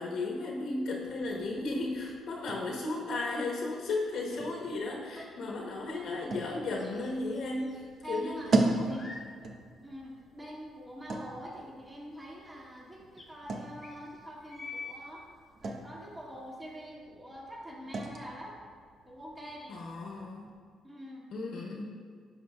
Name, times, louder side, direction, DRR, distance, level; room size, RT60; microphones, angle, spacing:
voice 1, 0.0-8.4 8.8-9.1 19.7-20.5 21.3-21.8, left 2 dB, 70° left, -2 dB, 1.1 m, -35 dB
sound 1, 1.0-20.6, right 2 dB, 50° right, 0.8 m, -39 dB
sound 2, 6.8-7.8 8.0-9.3 9.9-10.0 12.2-12.3 12.4-12.5 13.2-13.3 13.8-15.0, left 4 dB, 35° left, 1.3 m, -46 dB
voice 2, 8.0-8.5 8.9-9.1 9.8-15.2 15.6-18.6 19.0-19.8 20.8-21.3, equal, 20° right, -4 dB, 1.9 m, -45 dB
10.5 x 6.4 x 2.3 m, 2.1 s
cardioid pair, 90°, 0 cm